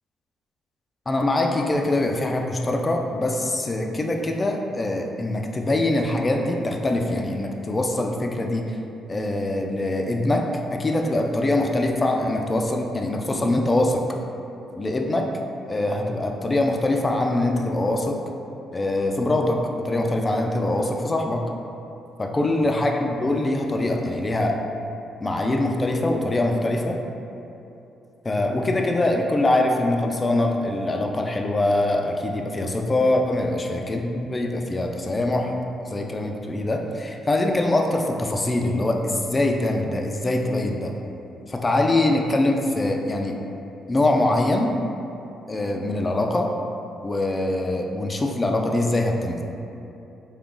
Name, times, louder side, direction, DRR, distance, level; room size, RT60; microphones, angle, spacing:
voice 1, 1.1-8.6 9.1-14.0 14.8-15.3 15.7-18.2 18.7-21.4 22.2-24.5 25.2-27.0 28.2-35.5 35.9-40.9 41.5-43.4 43.9-44.7 45.5-46.5 47.0-49.4, left 2 dB, 25° left, 2 dB, 0.3 m, -23 dB
3.6 x 2.4 x 3.7 m, 2.9 s
cardioid pair, 90°, 0 cm